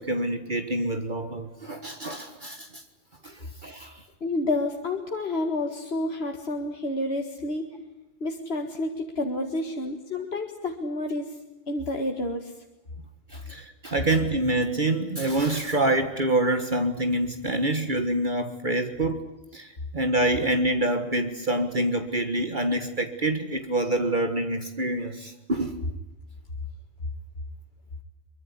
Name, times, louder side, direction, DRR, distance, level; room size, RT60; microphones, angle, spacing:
voice 1, 0.0-2.8 3.2-4.0 13.3-19.2 19.5-25.8, right 1 dB, 50° right, 7 dB, 1.8 m, -26 dB
voice 2, 4.2-7.8 8.2-11.4 11.7-12.5, left 2 dB, 70° left, 3 dB, 2.2 m, -29 dB
24.0 x 23.5 x 9.7 m, 0.93 s
omnidirectional pair, 1.1 m